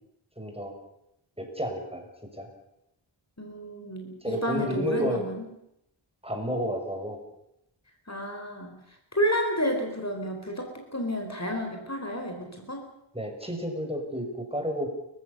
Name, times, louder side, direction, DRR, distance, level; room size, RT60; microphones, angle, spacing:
voice 1, 0.4-0.7 1.4-2.0 2.3-2.5 4.2-5.3 6.2-7.2 13.1-14.9, equal, 10° right, 3 dB, 6.1 m, -31 dB
voice 2, 3.4-5.5 8.1-8.8 9.1-12.8, equal, 35° left, 3 dB, 4.6 m, -31 dB
29.5 x 15.5 x 6.9 m, 0.81 s
wide cardioid pair, 45°, 48 cm